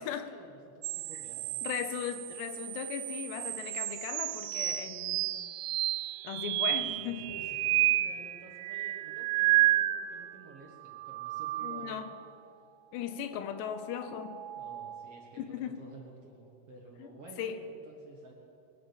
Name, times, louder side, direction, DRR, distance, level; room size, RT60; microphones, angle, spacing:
voice 1, 0.0-1.6 6.7-12.2 14.5-18.3, right 3 dB, 55° right, -1 dB, 1.7 m, -52 dB
sound 1, 0.8-10.4 10.8-12.2 14.0-15.2, right 16 dB, 85° right, 2.6 m, -32 dB
voice 2, 1.6-5.3 6.2-7.3 11.6-12.1 12.9-14.4 15.4-15.8 17.0-17.1 17.4-17.6, left 9 dB, 85° left, 9 dB, 3.1 m, -37 dB
23.0 x 8.5 x 7.1 m, 2.5 s
omnidirectional pair, 4.7 m